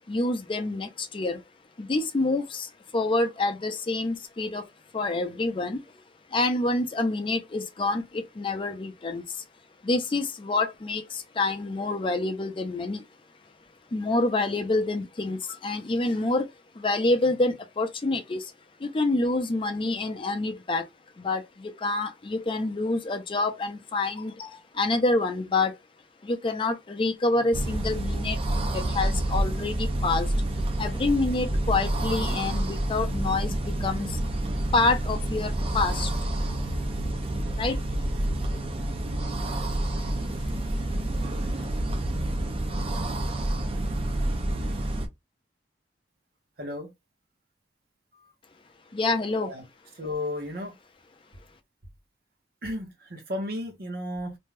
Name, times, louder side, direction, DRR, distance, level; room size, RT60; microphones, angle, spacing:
voice 1, 0.1-1.4 1.8-4.7 4.9-5.8 6.3-9.4 9.8-13.0 13.9-16.5 16.7-18.5 18.8-20.9 21.2-25.8 26.2-30.3 30.8-34.2 34.7-36.2 37.6-37.8 39.8-41.0 41.5-41.7 48.9-49.5, left 2 dB, 30° left, 0.4 m, -27 dB
sound 1, 27.5-45.1, right 1 dB, 30° right, 0.5 m, -28 dB
voice 2, 46.6-46.9 48.1-48.3 49.4-49.6 50.0-50.7 52.6-54.4, left 1 dB, 60° right, 0.8 m, -34 dB
2.6 x 2.2 x 3.1 m
head